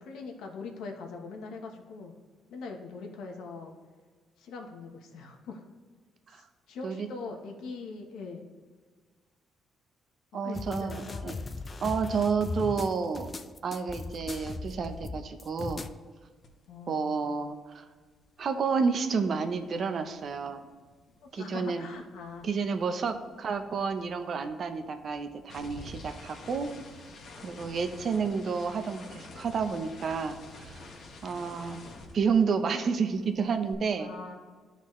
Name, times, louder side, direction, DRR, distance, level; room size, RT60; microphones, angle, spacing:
voice 1, 0.0-2.1 2.5-3.7 4.4-5.6 6.3-8.5 10.3-11.4 16.7-17.2 21.2-22.5 34.0-34.4, left 4 dB, 85° left, 3 dB, 1.0 m, -42 dB
voice 2, 10.3-11.3 11.8-13.3 13.6-15.8 16.9-17.8 18.4-20.6 21.3-21.8 22.4-26.7 27.4-30.8 31.2-31.8 32.1-34.1, right 5 dB, 55° right, 8 dB, 0.7 m, -30 dB
sound 1, 10.5-15.9, left 3 dB, 30° left, 0.5 m, -38 dB
sound 2, 16.4-16.7 16.9-21.3 21.6-32.8 33.1-33.7, left 2 dB, 60° left, 1.2 m, -49 dB
12.0 x 4.1 x 3.1 m, 1.5 s
cardioid pair, 90°, 0 cm